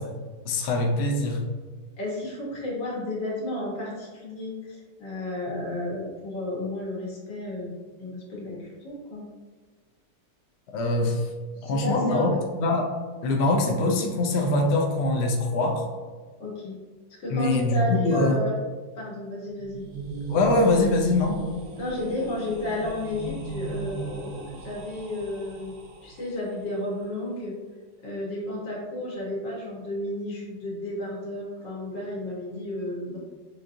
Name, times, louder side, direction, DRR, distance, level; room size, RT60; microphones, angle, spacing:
voice 1, 0.4-1.4 10.7-11.3 11.6-12.3 12.6-12.9 13.2-15.9 17.3-18.4 20.3-21.4, left 2 dB, 60° left, 0 dB, 0.7 m, -23 dB
voice 2, 2.0-9.3 11.6-12.2 16.4-16.8 17.2-18.5 19.0-19.8 21.8-27.5 28.0-33.2, left 1 dB, 80° left, -5 dB, 2.0 m, -32 dB
sound 1, 19.4-26.4, right 2 dB, 60° right, 1.0 m, -37 dB
6.8 x 2.8 x 2.6 m, 1.4 s
omnidirectional pair, 1.9 m